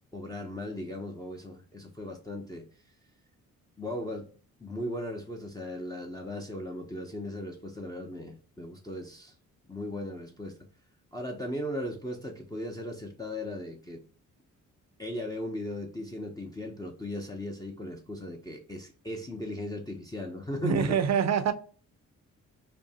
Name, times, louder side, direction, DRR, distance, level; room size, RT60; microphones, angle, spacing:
voice 1, 0.1-2.7 3.8-4.3 4.6-9.3 9.7-10.6 11.1-14.0 15.0-20.9, left 1 dB, 10° left, 0.7 m, -37 dB
voice 2, 20.6-21.5, right 7 dB, 55° right, 0.6 m, -25 dB
5.1 x 2.2 x 2.8 m
cardioid pair, 85°, 32 cm